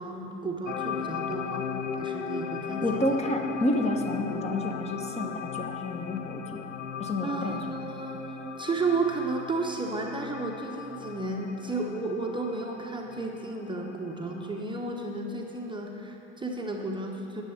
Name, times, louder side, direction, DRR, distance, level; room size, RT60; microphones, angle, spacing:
voice 1, 0.0-1.7 1.9-3.0 7.2-17.4, right 3 dB, 15° right, 0 dB, 0.9 m, -33 dB
sound 1, 0.7-14.6, left 7 dB, 80° left, 0.6 m, -37 dB
voice 2, 2.8-6.6 7.0-7.7, left 1 dB, 15° left, 3 dB, 1.1 m, -30 dB
11.0 x 7.0 x 7.0 m, 2.9 s
figure-of-eight pair, 75°, 37 cm